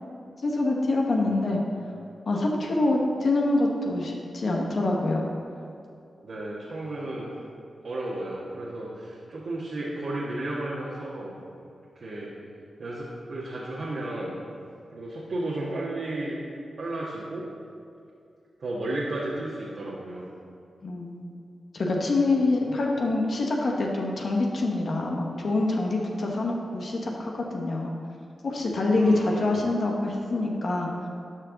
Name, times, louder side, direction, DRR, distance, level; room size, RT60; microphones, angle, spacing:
voice 1, 0.4-1.6 2.3-5.2 20.8-21.3 21.7-27.9 28.4-30.9, left 2 dB, 60° left, 0 dB, 1.0 m, -25 dB
voice 2, 6.2-7.3 7.8-11.4 11.9-12.3 12.8-14.4 14.9-16.4 16.8-17.5 18.6-20.3 22.7-22.8 28.9-29.5, right 2 dB, 65° right, -6 dB, 1.3 m, -33 dB
12.0 x 4.6 x 3.9 m, 2.5 s
cardioid pair, 55°, 0 cm